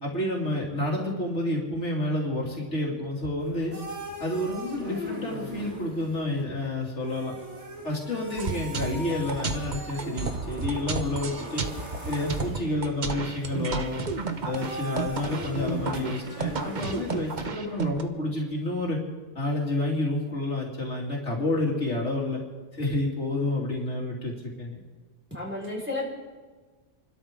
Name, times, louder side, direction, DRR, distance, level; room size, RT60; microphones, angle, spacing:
voice 1, 0.0-3.7 4.2-7.3 7.8-11.6 12.1-14.0 14.4-19.0 19.3-22.4 22.7-24.8, left 1 dB, 70° left, -2 dB, 3.0 m, -29 dB
sound 1, 3.4-17.5, left 1 dB, 65° right, 3.0 m, -40 dB
sound 2, 8.4-18.0, right 4 dB, 40° right, 1.0 m, -32 dB
voice 2, 25.3-26.1, left 2 dB, 10° right, -4 dB, 4.6 m, -33 dB
28.5 x 12.5 x 3.7 m, 1.3 s
omnidirectional pair, 1.3 m